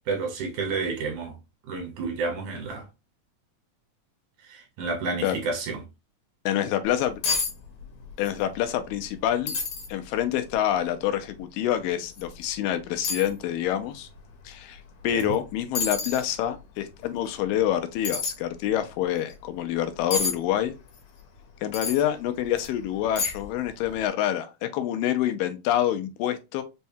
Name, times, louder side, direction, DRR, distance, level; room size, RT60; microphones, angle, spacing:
voice 1, 0.1-1.3 1.7-2.8 4.5-5.8 15.1-15.3, right 4 dB, 70° right, 2.3 m, -30 dB
voice 2, 6.5-7.2 8.2-9.5 9.9-14.1 14.5-20.7 21.6-26.6, left 11 dB, 85° left, 2.2 m, -27 dB
sound 1, 6.9-7.0 7.2-7.5 7.8-8.4 8.7-8.8 9.5-9.9 10.5-10.6 12.1-12.3 13.0-13.3 15.2-15.4 15.8-16.3 18.0-18.3 20.1-20.3 21.7-22.0 22.6-22.7 23.2-23.6 23.9-24.0, left 4 dB, 70° left, 1.9 m, -28 dB
5.4 x 2.1 x 2.6 m
omnidirectional pair, 3.9 m